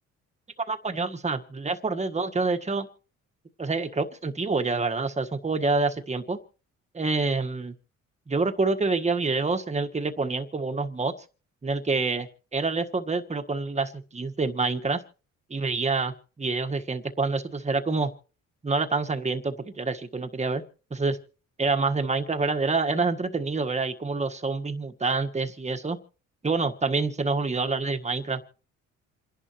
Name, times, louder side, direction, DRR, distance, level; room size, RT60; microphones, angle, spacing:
voice 1, 0.7-2.9 3.6-6.4 6.9-7.7 8.3-11.1 11.6-15.0 15.5-18.1 18.6-20.6 20.9-21.2 21.6-26.0 26.4-28.4, right 3 dB, 20° right, 6 dB, 1.6 m, -27 dB
28.0 x 11.0 x 3.1 m, 0.39 s
cardioid pair, 90°, 30 cm